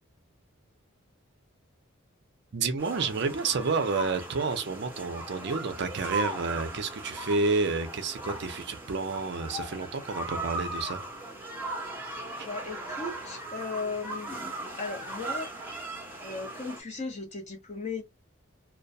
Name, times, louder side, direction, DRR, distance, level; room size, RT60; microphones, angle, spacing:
voice 1, 2.5-11.0 12.4-12.5, right 4 dB, 55° right, 0.5 m, -30 dB
sound 1, 2.8-16.8, right 2 dB, 10° right, 0.7 m, -38 dB
voice 2, 12.4-15.5 16.2-18.0, left 4 dB, 35° left, 0.7 m, -37 dB
2.2 x 2.2 x 2.6 m
head